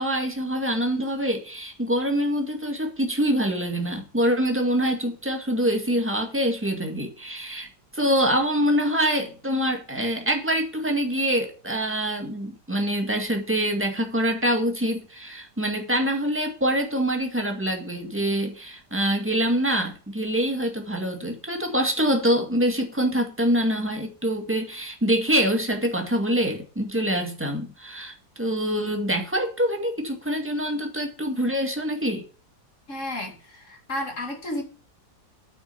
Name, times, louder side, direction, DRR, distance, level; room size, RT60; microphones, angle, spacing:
voice 1, 0.0-7.7 7.9-32.3, equal, 5° right, 1.9 m, -25 dB
voice 2, 32.9-34.6, left 1 dB, 45° left, 2.6 m, -32 dB
8.8 x 6.5 x 6.9 m
omnidirectional pair, 1.8 m